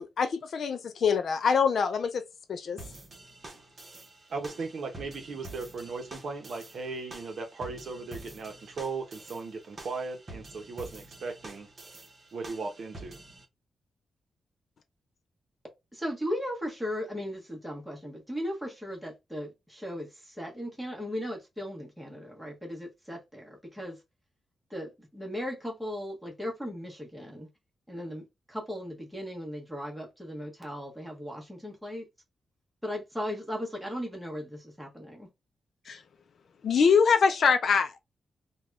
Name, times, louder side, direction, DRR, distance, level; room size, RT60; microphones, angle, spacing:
voice 1, 0.0-2.2 2.5-2.8 35.9-36.0 36.6-38.0, left 6 dB, 55° left, 0.4 m, -24 dB
sound 1, 2.8-13.4, right 2 dB, 30° right, 0.8 m, -48 dB
voice 2, 4.3-11.7 12.3-13.2, right 4 dB, 55° right, 0.7 m, -37 dB
voice 3, 15.9-24.0 24.7-27.5 27.9-32.1 32.8-35.3, equal, ahead, 1.0 m, -37 dB
3.4 x 2.2 x 2.4 m
wide cardioid pair, 160°, 0 cm